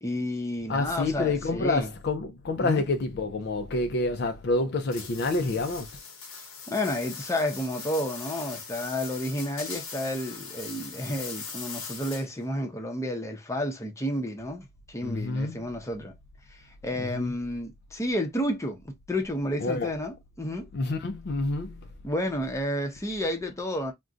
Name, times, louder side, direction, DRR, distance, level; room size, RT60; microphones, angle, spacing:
voice 1, 0.0-1.9 2.6-2.8 6.7-16.1 16.8-20.7 22.0-23.9, left 1 dB, 15° left, 0.7 m, -31 dB
voice 2, 0.7-5.9 15.0-15.7 17.0-17.3 19.6-19.9 20.7-21.9, left 2 dB, 55° left, 0.4 m, -28 dB
sound 1, 4.9-12.5, left 5 dB, 85° left, 0.9 m, -40 dB
2.5 x 2.2 x 3.7 m
head